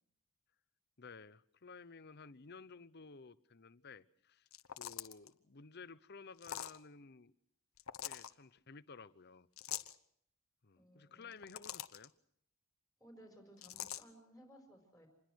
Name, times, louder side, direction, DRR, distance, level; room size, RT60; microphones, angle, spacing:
voice 1, 1.0-4.5 4.8-7.3 8.0-9.5 10.6-12.1, left 4 dB, 50° left, 15 dB, 0.9 m, -54 dB
sound 1, 4.5-5.3 6.4-6.8 7.8-8.3 9.6-10.0 11.2-12.1 13.6-14.0, left 11 dB, 70° left, 1.1 m, -44 dB
voice 2, 10.7-11.5 13.0-15.1, right 1 dB, 5° left, 3 dB, 5.2 m, -60 dB
26.5 x 21.0 x 6.4 m, 0.70 s
head